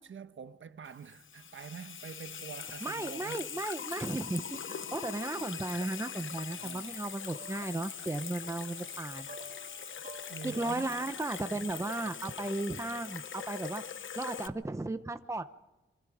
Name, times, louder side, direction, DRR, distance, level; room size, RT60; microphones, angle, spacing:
voice 1, 0.0-3.5 4.7-4.8 6.6-7.0 10.3-10.9 11.5-12.1, right 7 dB, 85° right, 1.1 m, -46 dB
Water tap faucet / Sink (filling or washing), 0.9-14.5, left 7 dB, 85° left, 0.9 m, -42 dB
voice 2, 2.8-9.3 10.4-13.8 14.1-15.7, right 2 dB, 15° right, 0.9 m, -35 dB
sound 1, 5.9-12.9, right 2 dB, 50° right, 4.0 m, -55 dB
27.0 x 24.5 x 5.0 m
wide cardioid pair, 105°, 20 cm